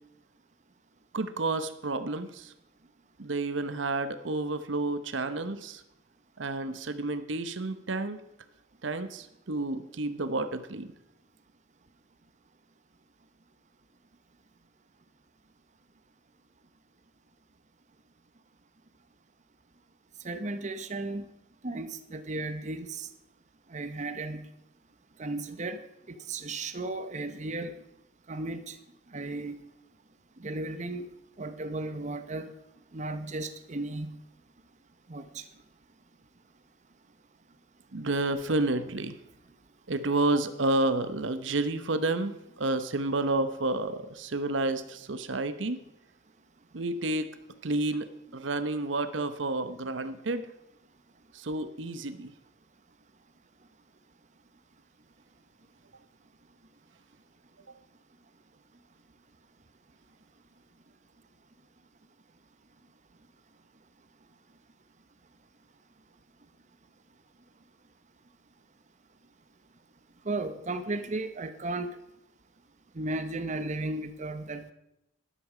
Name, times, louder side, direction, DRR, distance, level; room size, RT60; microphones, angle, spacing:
voice 1, 1.1-2.5 3.2-5.8 6.4-8.2 8.8-10.9 37.9-39.2 39.9-45.8 46.7-47.3 47.6-50.5 51.3-52.3, right 2 dB, 70° right, 12 dB, 0.9 m, -30 dB
voice 2, 20.2-21.2 21.6-23.1 23.7-24.5 25.2-25.8 26.1-27.8 28.3-28.8 29.1-29.6 30.4-31.1 31.4-32.5 32.9-34.2 35.1-35.4 70.2-71.9 72.9-74.7, right 2 dB, 40° right, 9 dB, 0.8 m, -35 dB
13.0 x 11.5 x 5.0 m, 0.84 s
head